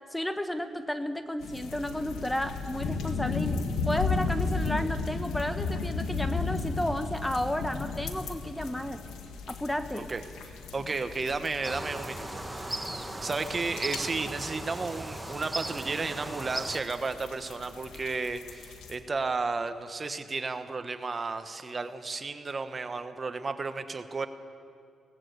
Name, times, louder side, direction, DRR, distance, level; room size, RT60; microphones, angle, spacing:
voice 1, 0.1-9.0 9.5-10.1, left 1 dB, 10° left, 9 dB, 1.0 m, -32 dB
sound 1, 1.4-18.9, left 4 dB, 85° left, 1.8 m, -35 dB
voice 2, 10.5-12.8 13.2-24.3, right 4 dB, 35° right, 9 dB, 1.2 m, -33 dB
sound 2, 11.6-16.8, right 1 dB, 10° right, 1.3 m, -37 dB
19.5 x 18.0 x 8.2 m, 2.4 s
cardioid pair, 80°, 0 cm